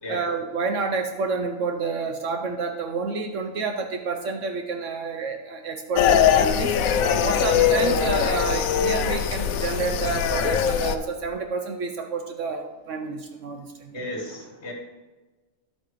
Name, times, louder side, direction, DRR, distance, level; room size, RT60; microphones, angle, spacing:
voice 1, 0.1-6.8 7.2-14.1, right 4 dB, 70° right, 5 dB, 1.0 m, -29 dB
sound 1, 6.0-11.0, left 8 dB, 90° left, 1.0 m, -21 dB
voice 2, 13.9-14.7, left 1 dB, 55° left, 2 dB, 1.6 m, -34 dB
10.5 x 8.3 x 3.1 m, 1.2 s
omnidirectional pair, 1.4 m